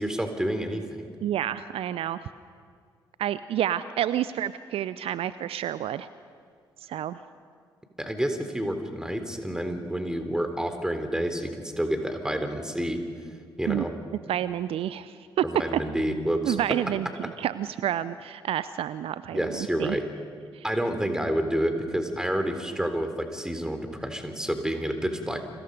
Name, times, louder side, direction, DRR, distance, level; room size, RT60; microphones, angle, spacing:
voice 1, 0.0-1.1 8.0-13.0 13.6-13.9 15.4-16.6 19.3-20.1 20.6-25.4, equal, 5° right, 7 dB, 3.8 m, -29 dB
voice 2, 1.2-2.2 3.2-6.1 6.8-7.2 13.7-13.9 14.3-15.4 15.7-15.8 16.4-20.0 20.5-20.6, right 11 dB, 60° right, 15 dB, 0.6 m, -29 dB
30.0 x 26.5 x 5.4 m, 2.1 s
figure-of-eight pair, 40°, 11 cm